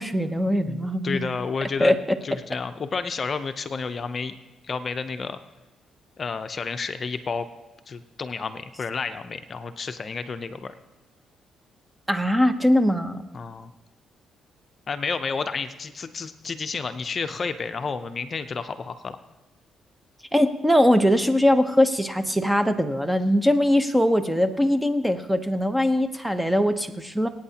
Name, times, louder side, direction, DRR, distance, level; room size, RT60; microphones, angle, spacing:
voice 1, 0.0-1.4 1.8-2.0 12.1-13.2 20.3-27.3, equal, 5° right, 9 dB, 0.8 m, -21 dB
voice 2, 0.7-1.9 2.2-4.3 4.6-5.4 6.2-7.5 7.9-10.7 13.3-13.7 14.9-19.2, left 5 dB, 40° left, 9 dB, 0.6 m, -31 dB
24.5 x 9.1 x 2.9 m, 1.1 s
cardioid pair, 90°, 0 cm